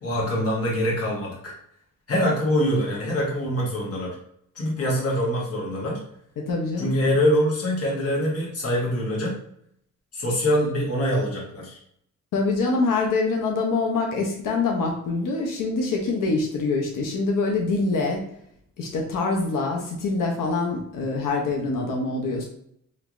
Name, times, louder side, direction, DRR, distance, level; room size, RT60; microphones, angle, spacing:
voice 1, 0.0-1.5 2.1-4.2 4.5-6.0 6.8-9.4 10.1-11.8, equal, 45° left, -3 dB, 1.3 m, -24 dB
voice 2, 6.4-6.9 12.3-18.2 18.8-22.5, left 3 dB, 80° left, 0 dB, 0.7 m, -25 dB
3.2 x 3.0 x 2.5 m, 0.70 s
cardioid pair, 105°, 32 cm